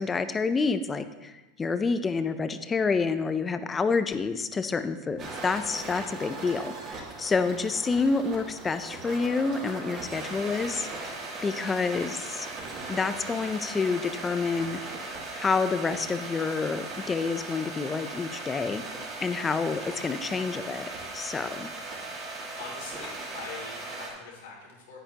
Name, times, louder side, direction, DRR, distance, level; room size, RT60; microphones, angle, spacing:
voice 1, 0.0-11.1 11.4-12.5 12.9-14.8 15.3-18.8 19.2-21.7, left 4 dB, 20° left, 11 dB, 0.5 m, -28 dB
sound 1, 5.2-24.1, right 3 dB, 40° right, 2.7 m, -38 dB
voice 2, 22.6-25.0, left 4 dB, 85° left, -1 dB, 2.8 m, -43 dB
10.0 x 8.8 x 2.9 m, 1.1 s
supercardioid pair, 120°, 0 cm